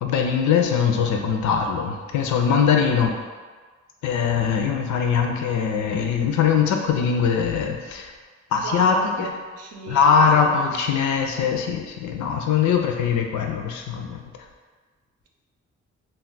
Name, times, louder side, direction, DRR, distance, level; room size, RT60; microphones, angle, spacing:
voice 1, 0.0-3.1 4.0-8.1 8.5-9.3 9.9-14.2, left 6 dB, 80° left, 3 dB, 0.4 m, -21 dB
voice 2, 8.6-10.5, right 2 dB, 55° right, 0 dB, 0.6 m, -34 dB
2.3 x 2.0 x 3.8 m, 1.4 s
cardioid pair, 60°, 29 cm